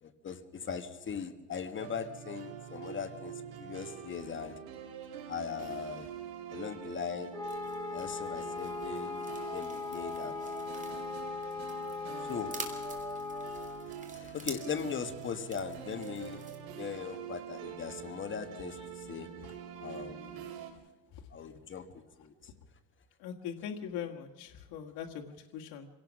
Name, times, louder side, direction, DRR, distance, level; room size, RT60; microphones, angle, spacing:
voice 1, 0.0-4.6 5.3-6.1 6.5-7.3 7.9-10.4 12.2-12.5 14.1-16.4 16.7-19.5 19.8-20.5 21.3-22.3, left 6 dB, 30° left, 9 dB, 1.4 m, -39 dB
sound 1, 1.8-20.7, right 9 dB, 80° right, 3.7 m, -45 dB
Wind instrument woodwind instrument, 7.3-13.9, left 4 dB, 10° left, 1.3 m, -39 dB
sound 2, 7.4-16.6, right 3 dB, 20° right, 3.2 m, -49 dB
voice 2, 23.2-25.9, left 8 dB, 85° left, 2 dB, 1.7 m, -41 dB
26.5 x 17.0 x 6.3 m, 1.2 s
cardioid pair, 145°, 36 cm